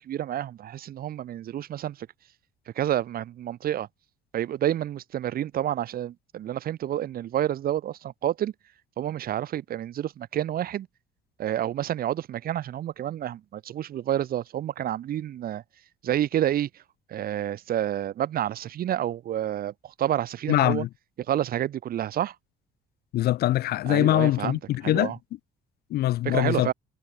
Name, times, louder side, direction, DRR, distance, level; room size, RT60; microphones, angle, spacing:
voice 1, 0.0-2.1 2.7-3.9 4.3-8.5 9.0-10.9 11.4-15.6 16.0-16.7 17.1-20.9 21.3-22.3 23.9-25.2 26.2-26.7, right 11 dB, 60° right, 6.1 m, -29 dB
voice 2, 20.5-20.9 23.1-25.1 25.9-26.7, left 14 dB, 70° left, 1.0 m, -23 dB
cardioid pair, 110°, 17 cm